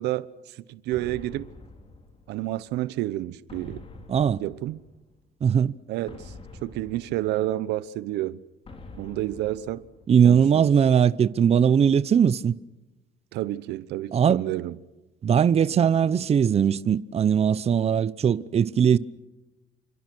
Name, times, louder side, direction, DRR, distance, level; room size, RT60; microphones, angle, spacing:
voice 1, 0.0-1.5 2.3-3.8 4.4-4.8 5.9-6.3 6.6-8.4 8.9-9.8 10.2-10.7 13.3-14.8, right 15 dB, 85° right, 1.0 m, -30 dB
sound 1, 0.9-2.7 3.5-5.2 6.1-7.9 8.7-10.4, left 3 dB, 35° left, 4.7 m, -46 dB
voice 2, 5.4-5.7 10.1-12.5 14.1-14.4 15.2-19.0, right 8 dB, 40° right, 0.8 m, -20 dB
29.0 x 25.5 x 6.2 m
cardioid pair, 110°, 17 cm